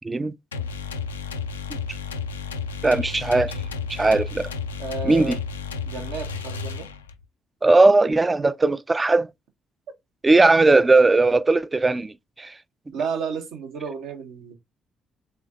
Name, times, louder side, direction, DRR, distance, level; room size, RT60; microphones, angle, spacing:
sound 1, 0.5-7.2, left 5 dB, 85° left, 0.3 m, -32 dB
voice 1, 2.8-3.6 3.9-4.5 5.0-5.4 7.6-9.3 10.2-12.6, right 3 dB, 25° right, 0.4 m, -18 dB
voice 2, 4.8-5.4 5.8-6.9 12.9-14.6, right 5 dB, 65° right, 0.9 m, -32 dB
3.6 x 3.4 x 3.5 m
figure-of-eight pair, 45°, 0 cm